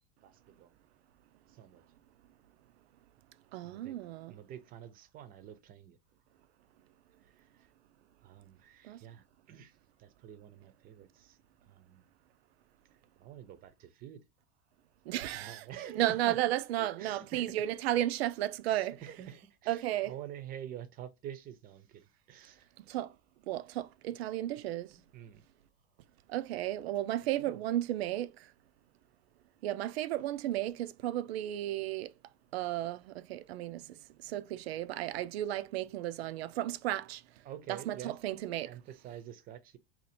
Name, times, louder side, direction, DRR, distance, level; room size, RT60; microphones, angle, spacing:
voice 1, 0.2-0.7 1.5-1.8 3.6-4.0 4.3-6.0 7.4-7.5 8.2-9.7 10.0-11.4 11.7-12.0 13.2-14.2 15.3-16.4 16.8-17.7 18.6-22.7 25.1-25.4 27.4-27.6 37.4-38.1 38.6-39.8, right 10 dB, 30° right, 0.6 m, -48 dB
voice 2, 3.5-4.3 8.9-9.0 15.1-15.6 15.9-19.0 19.7-20.1 22.9-23.1 23.5-24.9 26.3-28.3 29.6-32.1 32.5-33.8 34.2-37.2 37.7-38.7, right 13 dB, 85° right, 0.5 m, -33 dB
2.8 x 2.5 x 4.2 m
supercardioid pair, 135°, 31 cm